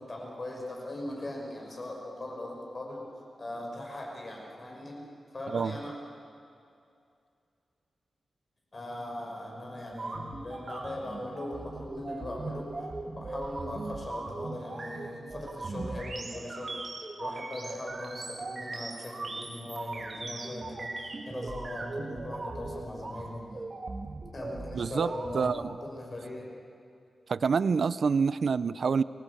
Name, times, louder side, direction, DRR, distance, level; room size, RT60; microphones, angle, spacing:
voice 1, 0.0-5.1 5.3-5.9 8.7-16.9 17.2-23.6 24.3-26.5, left 1 dB, 30° left, -1 dB, 5.8 m, -40 dB
sound 1, 9.9-25.7, right 3 dB, 35° right, 2.0 m, -39 dB
voice 2, 24.7-25.7 27.3-29.0, right 5 dB, 55° right, 16 dB, 0.5 m, -27 dB
30.0 x 20.5 x 8.5 m, 2.5 s
wide cardioid pair, 155°, 0 cm